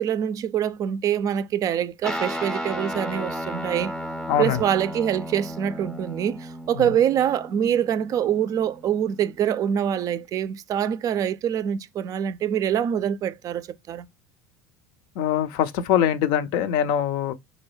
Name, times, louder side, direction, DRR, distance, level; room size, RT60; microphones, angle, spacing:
voice 1, 0.0-3.9 4.4-14.1, right 9 dB, 40° right, 0.3 m, -25 dB
Guitar, 2.0-9.7, equal, 5° left, 0.5 m, -34 dB
voice 2, 4.3-4.6 6.7-6.9 15.2-17.3, left 10 dB, 65° left, 0.5 m, -23 dB
3.8 x 2.2 x 3.1 m
hypercardioid pair, 90°, 9 cm